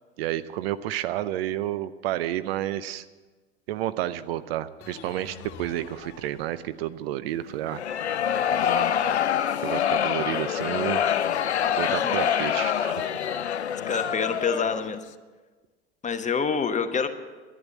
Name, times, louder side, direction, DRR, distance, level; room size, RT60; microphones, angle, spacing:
voice 1, 0.2-3.1 3.7-7.8 9.6-11.0 11.8-13.2, right 13 dB, 65° right, 14 dB, 0.7 m, -30 dB
sound 1, 4.8-7.1, left 5 dB, 45° left, 3.0 m, -46 dB
sound 2, 7.7-14.9, left 9 dB, 90° left, 0.6 m, -26 dB
voice 2, 13.9-15.0 16.0-17.1, left 5 dB, 20° left, 8 dB, 1.2 m, -26 dB
11.0 x 11.0 x 8.4 m, 1.3 s
hypercardioid pair, 80°, 32 cm